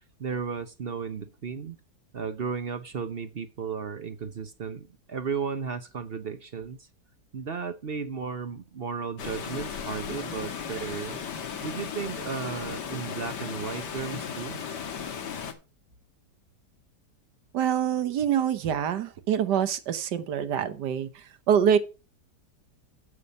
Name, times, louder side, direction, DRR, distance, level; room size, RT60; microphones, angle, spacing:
voice 1, 0.2-1.8 2.1-6.8 7.3-11.2 11.6-14.6, right 6 dB, 45° right, 0.8 m, -34 dB
Water, 9.2-15.5, left 7 dB, 90° left, 1.9 m, -36 dB
voice 2, 17.5-21.8, right 8 dB, 90° right, 1.6 m, -25 dB
8.3 x 7.2 x 5.3 m
omnidirectional pair, 1.8 m